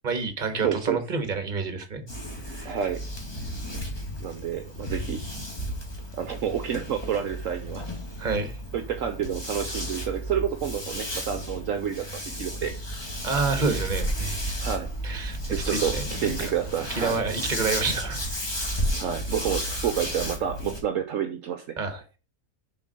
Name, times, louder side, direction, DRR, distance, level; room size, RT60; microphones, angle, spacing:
voice 1, 0.0-2.0 2.4-2.8 8.2-8.6 13.2-14.6 15.0-16.3 16.9-18.2 21.8-22.2, right 4 dB, 30° right, 1.5 m, -29 dB
voice 2, 0.6-1.0 2.6-3.1 4.2-5.3 6.2-7.9 8.7-12.0 12.3-12.7 14.6-14.9 15.5-17.2 19.0-21.8, right 9 dB, 65° right, 1.1 m, -29 dB
sound 1, 2.1-20.8, equal, 15° left, 1.7 m, -33 dB
7.0 x 4.6 x 6.5 m
omnidirectional pair, 1.6 m